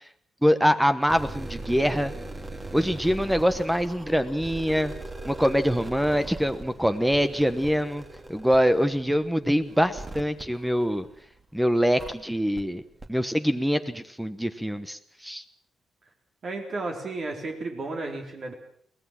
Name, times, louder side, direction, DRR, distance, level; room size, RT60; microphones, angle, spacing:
voice 1, 0.4-2.1 2.7-4.9 5.2-8.0 8.3-11.1 11.5-12.8 13.1-15.4, equal, 5° right, 11 dB, 1.1 m, -24 dB
sound 1, 1.0-11.4 12.0-12.1 12.6-12.7 13.0-13.1, right 2 dB, 20° right, 2.5 m, -40 dB
voice 2, 16.4-18.5, right 2 dB, 50° right, 2 dB, 4.1 m, -33 dB
22.5 x 17.5 x 7.5 m, 0.63 s
cardioid pair, 120°, 0 cm